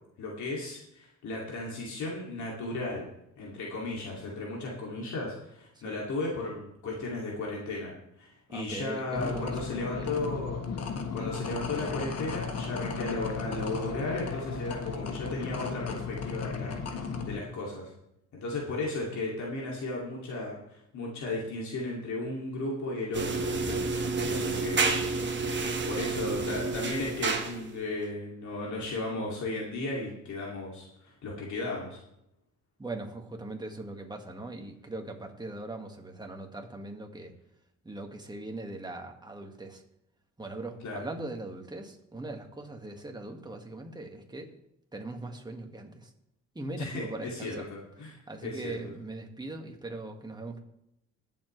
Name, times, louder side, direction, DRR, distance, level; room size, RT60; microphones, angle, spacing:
voice 1, 0.2-3.1 3.4-7.9 8.2-10.6 11.1-16.7 17.3-17.9 18.3-23.8 24.2-24.9 25.8-32.0 40.8-41.0 46.8-48.8, left 2 dB, 70° left, -3 dB, 2.7 m, -35 dB
voice 2, 8.5-10.2 32.8-37.3 37.8-39.8 40.4-44.5 44.9-46.1 46.6-47.6 48.3-50.6, right 2 dB, 15° right, 3 dB, 1.9 m, -40 dB
sound 1, 9.1-17.4, left 5 dB, 55° left, 1.5 m, -35 dB
sound 2, 23.1-27.8, right 4 dB, 40° right, 1.4 m, -30 dB
20.5 x 7.4 x 3.3 m, 0.81 s
cardioid pair, 90°, 30 cm